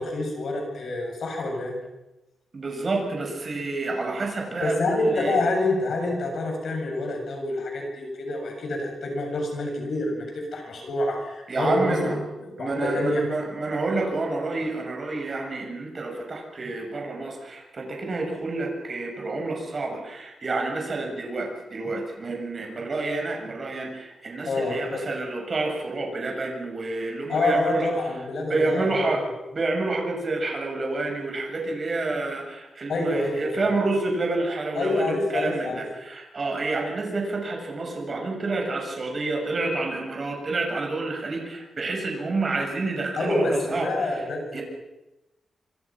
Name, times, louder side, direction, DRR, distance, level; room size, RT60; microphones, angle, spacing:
voice 1, 0.0-1.7 4.6-12.1 12.4-13.2 24.5-25.0 27.3-29.3 32.9-33.6 34.7-35.8 43.2-44.6, left 2 dB, 65° left, 2 dB, 7.9 m, -27 dB
voice 2, 2.5-5.4 11.5-12.2 12.6-27.9 28.5-29.2 29.5-44.2 44.5-44.6, right 3 dB, 40° right, 2 dB, 6.5 m, -29 dB
26.0 x 25.5 x 6.1 m, 0.99 s
wide cardioid pair, 145°, 0 cm